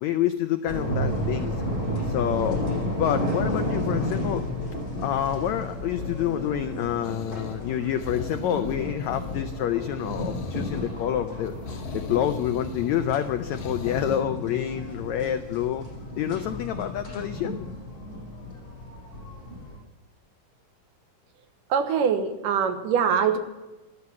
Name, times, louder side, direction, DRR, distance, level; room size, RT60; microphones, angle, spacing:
voice 1, 0.0-1.5 2.0-2.6 3.0-4.4 5.0-11.5 11.9-15.9 16.2-17.6, left 10 dB, 85° left, 9 dB, 1.6 m, -28 dB
sound 1, 0.7-19.8, left 1 dB, 25° left, 6.3 m, -32 dB
sound 2, 7.0-14.2, left 3 dB, 65° left, 2.7 m, -40 dB
voice 2, 21.7-23.4, right 7 dB, 75° right, 7 dB, 2.7 m, -23 dB
13.5 x 12.5 x 7.0 m, 1.1 s
omnidirectional pair, 4.0 m